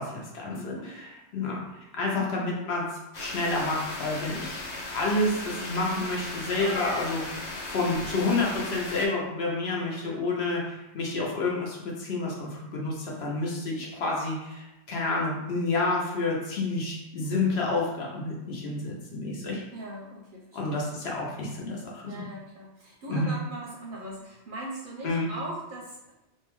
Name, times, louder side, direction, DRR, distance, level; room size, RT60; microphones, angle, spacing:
voice 1, 0.0-1.6 2.0-4.6 4.9-7.4 7.7-19.6 20.5-22.2 23.1-23.3 25.0-25.3, left 2 dB, 70° left, -3 dB, 0.9 m, -29 dB
voice 2, 0.6-0.9 2.1-2.5 19.7-20.8 22.0-26.1, right 1 dB, 60° right, -3 dB, 0.6 m, -40 dB
sound 1, 3.1-9.1, left 2 dB, 50° left, 0.5 m, -36 dB
2.7 x 2.2 x 3.0 m, 0.95 s
omnidirectional pair, 1.1 m